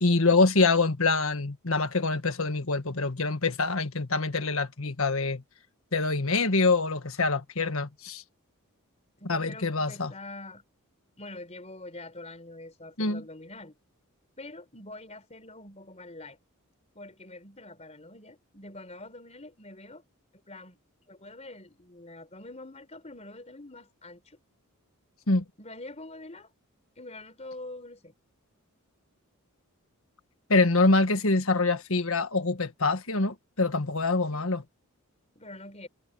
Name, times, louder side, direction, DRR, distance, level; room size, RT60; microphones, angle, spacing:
voice 1, 0.0-5.4 5.9-8.2 9.3-10.1 13.0-13.2 25.3-25.4 30.5-34.6, left 3 dB, 65° left, 1.7 m, -25 dB
voice 2, 9.2-10.6 11.2-13.8 14.4-16.4 16.9-20.0 20.5-20.8 21.1-24.4 25.6-26.5 27.0-28.1 34.3-34.5 35.3-35.9, left 2 dB, 30° left, 4.6 m, -45 dB
head